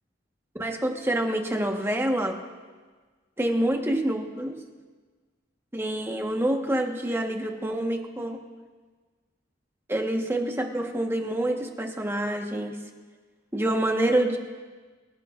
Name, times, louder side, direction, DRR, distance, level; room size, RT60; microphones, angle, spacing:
voice 1, 0.5-2.3 3.4-4.6 5.7-8.4 9.9-12.8 13.5-14.4, right 1 dB, 15° right, 2 dB, 1.3 m, -27 dB
25.5 x 16.0 x 2.5 m, 1.4 s
head